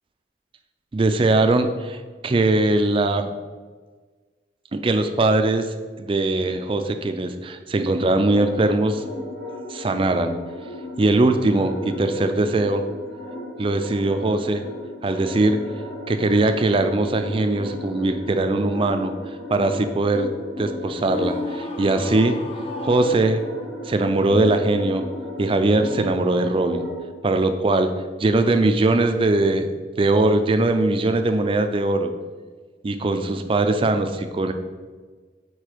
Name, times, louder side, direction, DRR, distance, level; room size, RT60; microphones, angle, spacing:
voice 1, 0.9-3.3 4.7-9.0 9.7-10.4 11.0-12.8 13.6-14.6 15.0-15.6 16.1-19.1 19.5-20.3 20.6-22.4 22.8-23.4 23.9-25.1 25.4-26.9 27.2-27.9 28.2-29.7 30.0-32.1 32.8-34.5, right 2 dB, 30° right, 8 dB, 0.4 m, -21 dB
sound 1, 8.3-27.0, left 1 dB, 65° left, 1.2 m, -35 dB
Screaming, 21.1-23.8, left 2 dB, 30° left, 0.5 m, -40 dB
4.9 x 4.5 x 4.5 m, 1.4 s
head